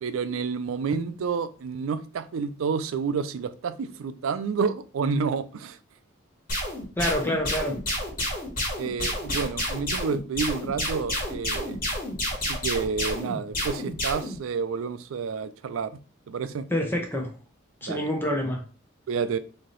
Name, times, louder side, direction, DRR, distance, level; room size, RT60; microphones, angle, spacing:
voice 1, 0.0-5.8 8.8-11.8 12.4-16.0 16.3-16.7 17.8-18.1 19.1-19.4, right 5 dB, 80° right, 0.4 m, -29 dB
sound 1, 6.5-14.4, left 1 dB, 45° left, 1.5 m, -29 dB
voice 2, 7.0-7.7 16.7-17.3 17.8-18.6, left 1 dB, 10° left, 0.6 m, -27 dB
3.3 x 2.7 x 3.8 m
head